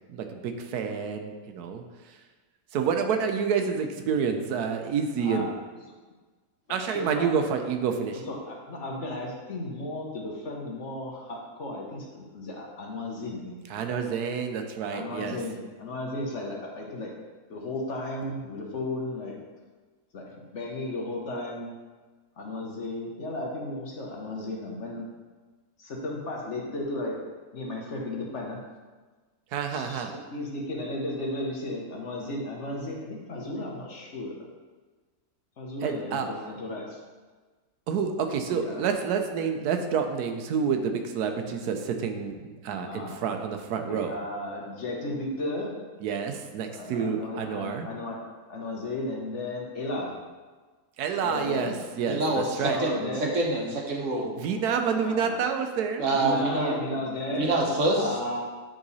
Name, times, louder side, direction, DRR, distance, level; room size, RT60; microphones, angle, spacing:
voice 1, 0.1-1.8 2.7-5.5 6.7-8.2 13.7-15.4 29.5-30.1 35.8-36.3 37.9-44.1 46.0-47.9 51.0-52.8 54.4-56.1, right 6 dB, 90° right, 5 dB, 1.2 m, -28 dB
voice 2, 5.2-5.5 6.7-7.3 8.1-13.6 14.9-17.1 17.5-19.4 20.1-21.7 22.4-25.1 25.8-27.2 27.5-28.6 29.7-34.5 35.6-37.0 38.5-38.8 42.8-43.2 43.7-45.8 46.7-48.2 48.5-50.1 51.1-51.8 52.6-53.3 55.0-55.3 56.1-57.5 57.9-58.4, left 1 dB, 55° left, -1 dB, 1.2 m, -34 dB
voice 3, 52.1-53.1 53.3-54.3 56.0-56.8 57.3-58.0, right 2 dB, 55° right, -1 dB, 1.3 m, -26 dB
9.0 x 3.8 x 4.1 m, 1.3 s
omnidirectional pair, 1.6 m